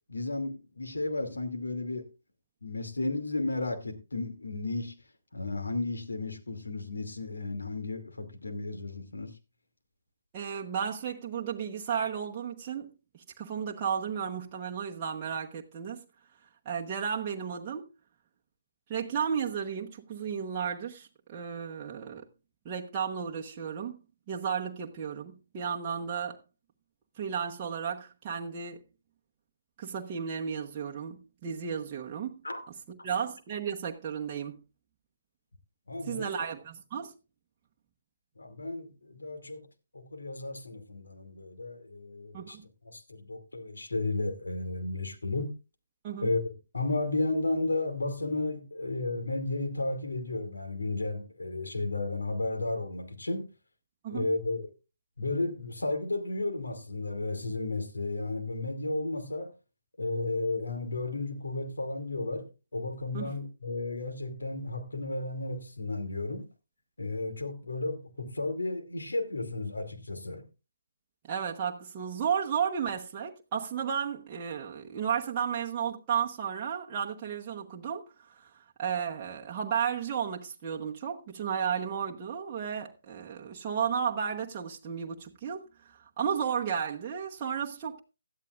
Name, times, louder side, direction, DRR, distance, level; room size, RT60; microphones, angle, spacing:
voice 1, 0.1-2.1 2.6-5.0 5.3-9.3 32.4-32.6 33.0-33.1 35.9-36.4 38.4-39.6 39.9-42.6 42.9-45.5 46.2-46.4 46.7-53.5 54.1-54.7 55.2-59.5 60.0-66.4 67.0-70.5, left 2 dB, 75° left, 2.5 m, -33 dB
voice 2, 10.3-16.0 16.6-17.9 18.9-22.3 22.6-24.0 24.3-26.4 27.2-28.8 29.8-32.4 32.9-34.6 36.1-37.2 42.3-42.6 46.0-46.3 54.0-54.2 63.1-63.3 71.2-88.0, right 7 dB, 25° right, 1.1 m, -33 dB
17.0 x 12.0 x 2.5 m
figure-of-eight pair, 145°, 0 cm